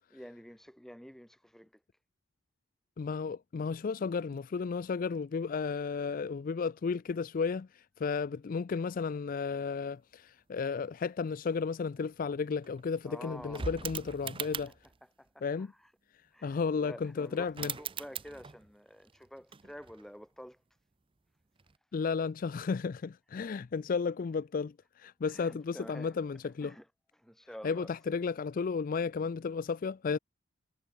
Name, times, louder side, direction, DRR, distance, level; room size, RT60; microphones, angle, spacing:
voice 1, 0.1-1.7 13.0-13.7 15.2-15.4 16.3-20.6 25.3-26.2 26.6-26.8 27.2-27.9, equal, ahead, 1.4 m, -49 dB
voice 2, 3.0-14.7 15.4-15.7 16.4-17.7 21.9-26.7 27.6-30.2, left 5 dB, 45° left, 0.4 m, -33 dB
sound 1, 3.9-9.0, right 1 dB, 85° right, 4.6 m, -72 dB
sound 2, 12.1-12.2 12.4-15.0 17.0-17.1 17.4-18.7 19.0-20.2 21.6-21.8, right 6 dB, 25° right, 0.7 m, -41 dB
head